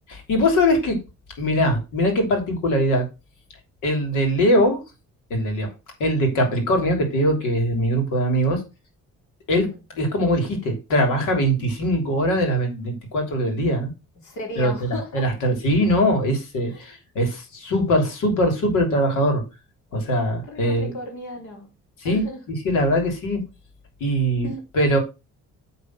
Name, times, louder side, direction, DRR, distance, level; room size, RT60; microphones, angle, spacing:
voice 1, 0.1-1.0 1.4-3.1 3.8-4.8 5.3-5.7 6.0-8.6 9.5-9.7 9.9-13.9 14.6-19.4 19.9-20.9 22.0-22.2 22.6-23.4 24.0-24.5 24.7-25.0, equal, 90° left, 3.2 m, -21 dB
voice 2, 14.2-15.3 16.7-16.9 20.4-21.7 22.0-22.4 24.4-24.6, left 1 dB, 75° left, 3.2 m, -35 dB
8.6 x 4.1 x 6.0 m
cardioid pair, 90°, 30 cm